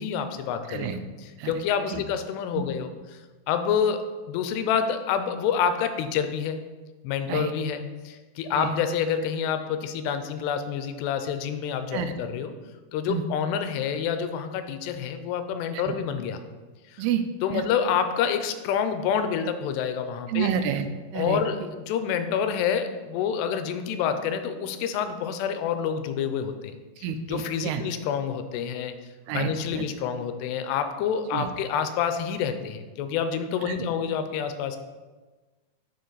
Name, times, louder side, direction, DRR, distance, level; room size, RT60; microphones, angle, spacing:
voice 1, 0.0-2.9 3.5-6.6 7.0-12.5 12.9-16.4 16.9-17.0 17.4-20.5 21.1-28.9 29.3-34.8, left 7 dB, 85° left, 8 dB, 2.7 m, -28 dB
voice 2, 0.7-1.0 1.4-1.5 1.9-2.0 7.3-7.5 8.5-8.8 11.9-12.1 13.1-13.2 15.7-15.9 17.0-17.2 17.5-17.6 20.3-20.9 21.1-21.7 27.0-27.8 29.3-29.8 31.3-31.5 33.7-33.8, right 8 dB, 85° right, 8 dB, 2.6 m, -29 dB
9.5 x 5.1 x 3.9 m, 1.3 s
omnidirectional pair, 4.7 m